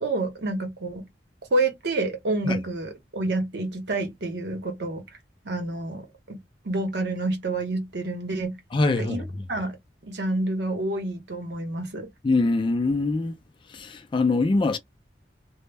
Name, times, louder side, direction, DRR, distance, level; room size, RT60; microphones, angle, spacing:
voice 1, 0.0-1.0 1.5-5.0 5.4-6.4 6.6-8.6 9.0-9.2 9.5-9.8 10.0-12.1, right 2 dB, 65° right, 0.8 m, -28 dB
voice 2, 8.7-9.2 12.2-13.3 13.7-14.8, left 3 dB, 25° left, 0.3 m, -23 dB
2.1 x 2.0 x 3.3 m
head